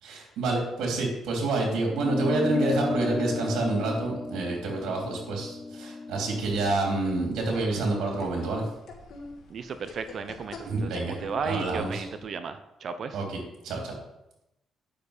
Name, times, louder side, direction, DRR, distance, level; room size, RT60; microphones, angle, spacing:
voice 1, 0.0-8.6 10.6-11.2 11.4-12.0 13.1-13.4 13.6-14.0, right 3 dB, 80° right, 0 dB, 3.2 m, -28 dB
sound 1, 2.0-6.8, left 3 dB, 25° left, 0.4 m, -33 dB
sound 2, 6.3-12.3, left 3 dB, 60° left, 2.0 m, -45 dB
voice 2, 9.5-13.2, right 5 dB, 55° right, 10 dB, 0.8 m, -35 dB
9.4 x 6.9 x 5.1 m, 0.89 s
cardioid pair, 90°, 0 cm